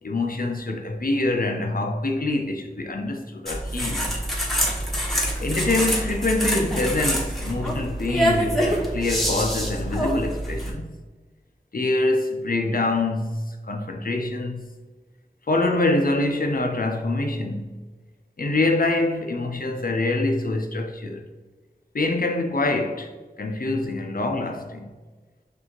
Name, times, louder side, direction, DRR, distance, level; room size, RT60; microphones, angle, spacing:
voice 1, 0.0-4.2 5.4-11.0 11.7-14.7 15.5-17.8 18.4-21.3 21.9-23.1 23.4-24.9, left 2 dB, 70° left, 0.6 m, -25 dB
sound 1, 3.5-10.7, equal, ahead, 1.2 m, -25 dB
6.3 x 2.7 x 2.9 m
wide cardioid pair, 45°, 15 cm